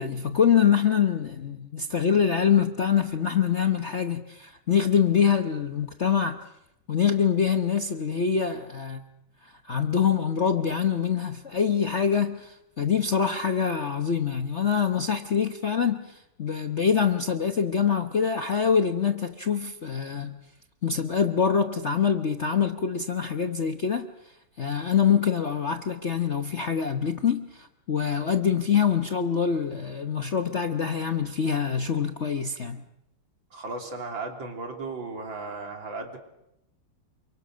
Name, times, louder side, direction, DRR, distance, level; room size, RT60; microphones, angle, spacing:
voice 1, 0.0-6.4 6.9-9.0 9.4-20.4 20.8-24.1 24.6-32.8, left 7 dB, 45° left, 7 dB, 1.0 m, -25 dB
voice 2, 33.5-36.2, right 3 dB, 65° right, 3 dB, 4.0 m, -35 dB
28.5 x 24.5 x 6.4 m, 0.84 s
omnidirectional pair, 2.3 m